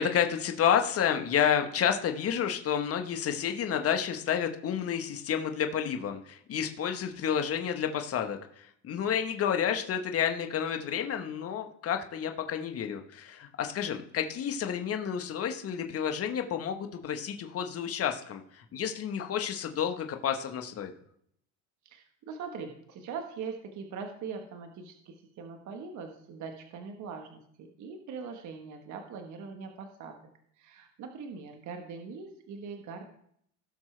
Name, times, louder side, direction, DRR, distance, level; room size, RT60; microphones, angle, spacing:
voice 1, 0.0-20.9, left 8 dB, 40° left, 5 dB, 1.3 m, -30 dB
voice 2, 21.8-30.2 30.6-33.1, right 5 dB, 50° right, 4 dB, 1.4 m, -42 dB
17.5 x 6.1 x 3.3 m, 0.69 s
supercardioid pair, 105°, 36 cm